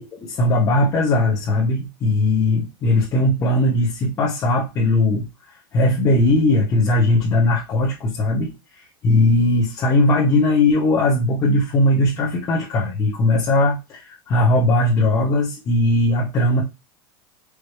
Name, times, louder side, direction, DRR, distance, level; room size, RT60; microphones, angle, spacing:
voice 1, 0.1-16.6, left 2 dB, 25° left, -4 dB, 1.0 m, -19 dB
4.7 x 3.0 x 3.1 m, 0.25 s
supercardioid pair, 160°, 12 cm